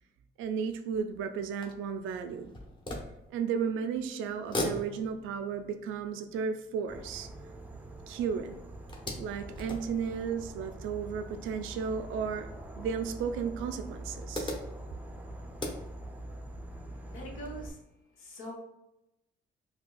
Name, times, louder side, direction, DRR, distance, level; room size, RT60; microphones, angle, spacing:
voice 1, 0.4-2.5 3.3-7.3 8.1-8.6 9.2-12.5 12.8-14.5, right 6 dB, 85° right, 8 dB, 0.4 m, -34 dB
sound 1, 0.9-3.9 4.2-8.1 8.5-11.1 12.0-12.1 12.5-12.6 13.7-16.3, left 1 dB, 25° left, 0.8 m, -41 dB
Insect / Frog, 6.9-17.7, right 1 dB, 10° right, 0.4 m, -44 dB
voice 2, 17.1-17.8 18.2-18.5, right 1 dB, 90° left, 0 dB, 1.0 m, -43 dB
5.1 x 2.2 x 2.3 m, 0.89 s
cardioid pair, 90°, 20 cm